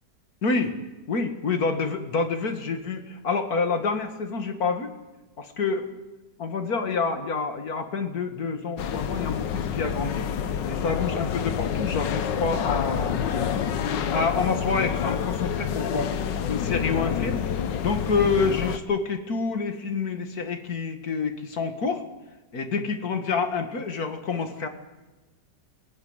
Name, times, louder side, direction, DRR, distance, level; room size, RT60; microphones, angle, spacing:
voice 1, 0.4-0.7 1.1-4.9 5.4-5.9 6.4-10.3 10.7-13.7 14.1-16.1 16.5-17.4 17.8-22.0 22.5-24.7, left 4 dB, 60° left, 7 dB, 2.3 m, -27 dB
sound 1, 8.8-18.8, left 8 dB, 90° left, 1.6 m, -28 dB
23.0 x 14.5 x 9.6 m, 1.1 s
omnidirectional pair, 1.9 m